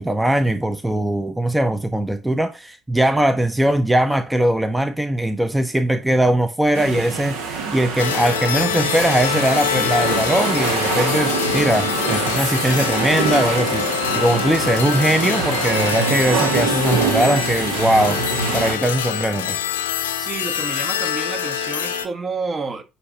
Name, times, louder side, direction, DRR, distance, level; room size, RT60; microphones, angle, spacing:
voice 1, 0.0-18.2 18.5-19.6, right 1 dB, 10° right, 0.7 m, -20 dB
sound 1, 6.7-18.7, right 5 dB, 60° right, 1.2 m, -25 dB
sound 2, 8.0-22.1, left 9 dB, 75° left, 0.7 m, -25 dB
voice 2, 20.2-22.8, right 4 dB, 30° right, 1.3 m, -29 dB
9.7 x 3.3 x 5.3 m
figure-of-eight pair, 55°, 0 cm